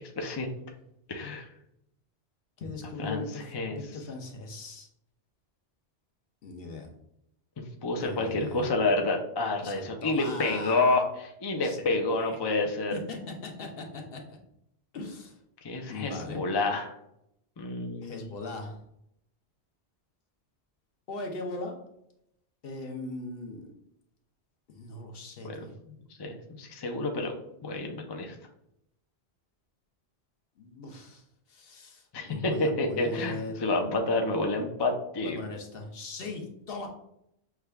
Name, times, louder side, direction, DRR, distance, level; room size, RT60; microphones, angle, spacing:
voice 1, 0.2-0.5 1.1-1.5 3.0-3.8 7.6-12.9 15.6-16.9 17.6-18.2 25.4-25.7 26.2-27.4 27.6-28.3 32.1-35.4, left 2 dB, 35° left, 3 dB, 0.4 m, -29 dB
voice 2, 2.6-4.9 6.4-6.9 8.0-8.7 9.6-11.0 11.6-12.4 12.9-14.4 14.9-15.4 15.9-16.4 18.0-18.8 21.1-21.8 22.6-23.7 24.7-25.7 30.6-31.2 31.5-33.7 35.2-36.9, left 3 dB, 60° left, 3 dB, 0.9 m, -39 dB
6.0 x 2.3 x 3.3 m, 0.77 s
omnidirectional pair, 1.1 m